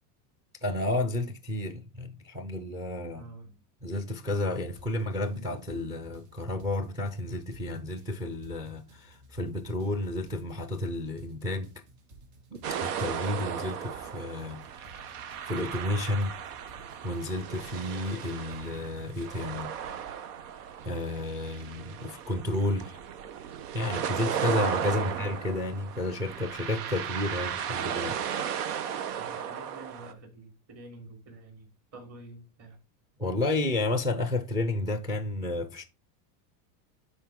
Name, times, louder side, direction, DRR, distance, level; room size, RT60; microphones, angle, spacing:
voice 1, 0.6-3.3 3.8-11.7 12.8-14.6 14.9-15.0 15.5-16.4 17.0-19.7 20.8-23.0 23.7-28.2 28.6-28.8 33.2-35.8, left 2 dB, 10° right, 0.4 m, -31 dB
voice 2, 3.1-3.5 29.1-32.8, right 2 dB, 35° right, 3.3 m, -48 dB
sound 1, 4.4-19.5, right 1 dB, 65° right, 2.8 m, -55 dB
sound 2, 12.6-30.1, right 8 dB, 90° right, 1.1 m, -35 dB
10.5 x 4.3 x 3.7 m
supercardioid pair, 155°, 46 cm